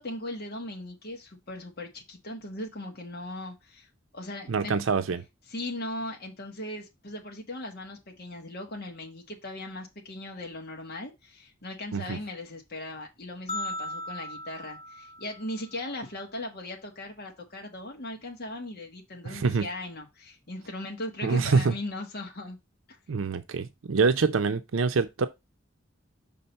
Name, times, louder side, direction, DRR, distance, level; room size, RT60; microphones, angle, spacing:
voice 1, 0.0-4.7 5.5-22.6 22.9-23.0, left 1 dB, 50° left, 1.4 m, -38 dB
voice 2, 4.5-5.2 11.9-12.2 19.3-19.7 21.2-21.7 23.1-25.3, right 4 dB, 85° right, 0.5 m, -25 dB
sound 1, 13.5-15.8, left 1 dB, 35° left, 1.4 m, -37 dB
5.8 x 3.8 x 5.2 m
head